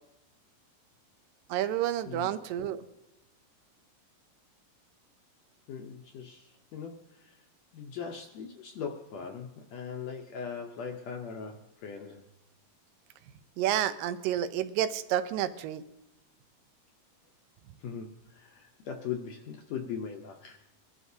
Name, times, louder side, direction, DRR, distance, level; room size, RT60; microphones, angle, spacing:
voice 1, 1.5-2.8 13.6-15.8, right 11 dB, 85° right, 11 dB, 2.3 m, -30 dB
voice 2, 5.7-6.9 7.2-7.4 7.7-12.2 17.8-20.6, left 7 dB, 75° left, 3 dB, 1.6 m, -40 dB
22.5 x 12.5 x 2.7 m, 0.87 s
omnidirectional pair, 3.9 m